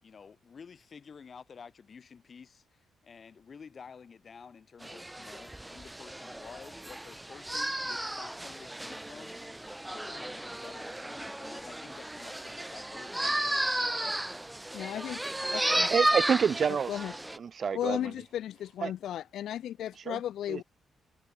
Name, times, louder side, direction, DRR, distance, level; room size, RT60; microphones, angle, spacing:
voice 1, 0.0-13.4, left 6 dB, 35° left, 5.7 m, -51 dB
sound 1, 4.8-17.4, right 1 dB, 5° right, 0.9 m, -33 dB
voice 2, 14.7-15.2 15.5-15.9 16.9-17.1 17.7-20.6, left 11 dB, 75° left, 1.0 m, -35 dB
voice 3, 15.9-17.0 17.4-18.0 18.8-18.9 20.1-20.2 20.5-20.6, right 6 dB, 40° right, 0.3 m, -28 dB
cardioid pair, 150°, 0 cm